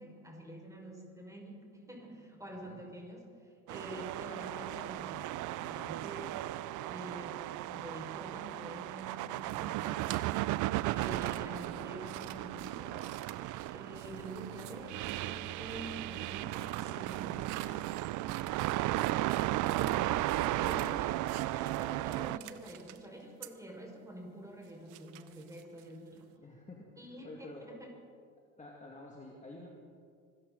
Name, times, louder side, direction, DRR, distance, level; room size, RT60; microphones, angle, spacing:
voice 1, 0.0-6.5 6.9-10.3 10.9-13.3 13.7-18.2 18.5-26.3 27.0-27.9, right 1 dB, 5° right, 0 dB, 5.3 m, -47 dB
sound 1, 3.7-22.4, right 16 dB, 45° right, 0.5 m, -35 dB
sound 2, 9.4-15.0 16.1-20.0 20.3-20.9 21.3-23.0 23.4-23.5 24.6-26.2, right 15 dB, 65° right, 1.0 m, -49 dB
voice 2, 26.4-26.9 27.2-27.7 28.6-29.7, left 2 dB, 15° left, -1 dB, 2.3 m, -49 dB
25.0 x 13.5 x 4.0 m, 2.2 s
hypercardioid pair, 75°, 42 cm